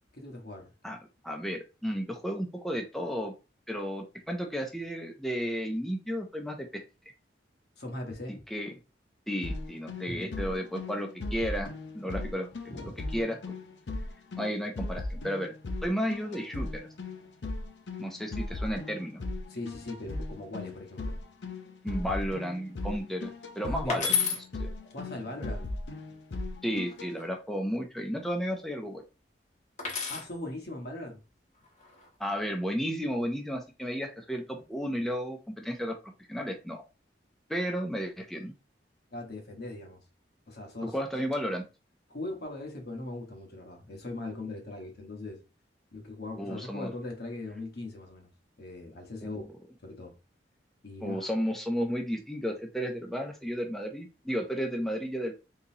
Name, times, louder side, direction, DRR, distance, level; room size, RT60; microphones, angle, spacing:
voice 1, 0.1-0.7 7.8-8.4 10.1-10.3 12.7-12.9 19.5-21.2 23.6-24.1 24.8-25.7 30.1-31.2 39.1-40.0 40.5-41.0 42.1-45.4 45.9-48.3 48.6-49.4 49.8-50.1 50.8-51.3, left 2 dB, 60° left, 1.2 m, -40 dB
voice 2, 1.2-3.3 3.7-6.7 8.5-8.8 9.3-11.7 11.9-12.5 13.1-13.4 14.4-15.5 15.8-16.9 18.0-19.2 21.8-24.2 24.6-24.7 26.6-29.0 32.2-36.0 36.3-36.8 37.5-38.5 40.8-41.6 46.4-46.9 49.2-49.5 51.0-55.3, equal, ahead, 0.5 m, -33 dB
sound 1, 9.4-27.1, left 2 dB, 80° left, 0.6 m, -38 dB
sound 2, 23.9-24.4 26.7-27.3 29.8-30.3 31.6-32.1, left 6 dB, 40° left, 0.9 m, -30 dB
3.8 x 2.9 x 2.7 m
head